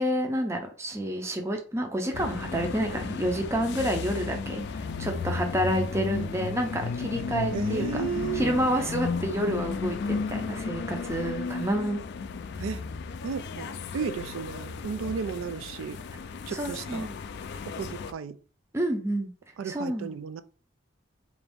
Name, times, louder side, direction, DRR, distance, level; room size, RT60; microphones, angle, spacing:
voice 1, 0.0-8.1 8.3-12.0 16.5-17.1 18.7-19.3 19.6-20.1, equal, 15° right, 0.5 m, -29 dB
sound 1, 2.1-18.1, left 4 dB, 60° left, 0.3 m, -34 dB
voice 2, 7.5-8.5 12.6-12.8 13.2-16.0 16.5-17.1 17.8-18.4 19.6-20.4, right 6 dB, 80° right, 0.3 m, -34 dB
3.9 x 2.6 x 3.5 m
head